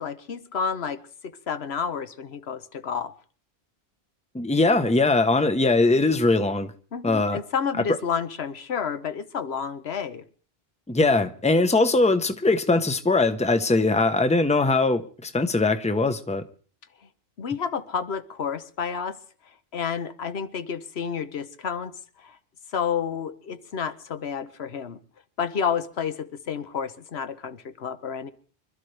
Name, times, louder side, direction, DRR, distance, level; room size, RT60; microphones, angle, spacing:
voice 1, 0.0-3.1 6.9-10.2 17.4-19.2 19.7-21.9 22.2-22.4 22.7-25.0 25.4-28.3, left 6 dB, 85° left, 1.2 m, -30 dB
voice 2, 4.3-6.7 7.0-7.4 7.9-8.0 10.9-16.4, left 3 dB, 5° left, 0.8 m, -21 dB
25.5 x 13.0 x 3.3 m
omnidirectional pair, 1.0 m